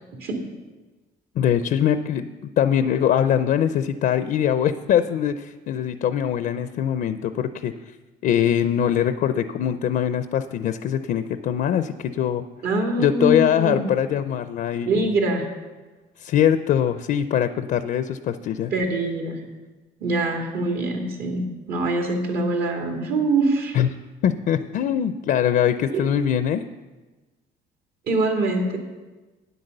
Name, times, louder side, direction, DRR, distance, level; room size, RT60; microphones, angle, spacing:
voice 1, 1.4-2.3 2.6-7.7 8.2-12.4 13.0-15.1 16.2-18.7 23.7-23.9 24.2-26.6, left 9 dB, 60° left, 11 dB, 0.5 m, -22 dB
voice 2, 12.6-13.8 14.8-15.5 18.7-19.4 20.0-23.8 25.9-26.1 28.1-28.8, right 2 dB, 65° right, 2 dB, 2.4 m, -24 dB
9.4 x 8.0 x 6.6 m, 1.2 s
cardioid pair, 110°, 17 cm